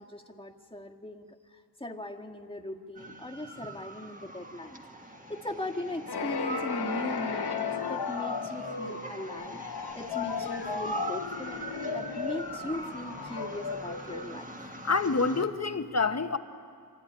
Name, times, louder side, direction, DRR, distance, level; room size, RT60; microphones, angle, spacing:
voice 1, 0.0-4.8 5.3-9.6 9.9-14.5, left 1 dB, 15° left, 2 dB, 1.6 m, -39 dB
sound 1, 3.0-15.4, right 2 dB, 20° right, 1.6 m, -42 dB
sound 2, 6.1-14.8, left 5 dB, 85° left, 0.9 m, -35 dB
voice 2, 14.8-16.4, left 4 dB, 40° left, 8 dB, 1.0 m, -27 dB
24.5 x 14.5 x 10.0 m, 2.3 s
wide cardioid pair, 50°, 39 cm